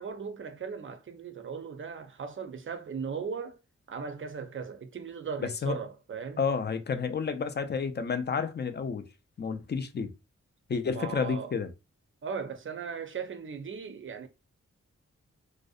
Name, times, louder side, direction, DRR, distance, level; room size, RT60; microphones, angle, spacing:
voice 1, 0.0-3.6 3.9-6.4 10.9-11.5 12.2-14.3, right 6 dB, 45° right, 0.5 m, -38 dB
voice 2, 5.4-5.8 6.4-9.0 9.4-10.1 10.7-11.7, left 5 dB, 35° left, 0.4 m, -30 dB
2.5 x 2.1 x 2.3 m
wide cardioid pair, 75°, 29 cm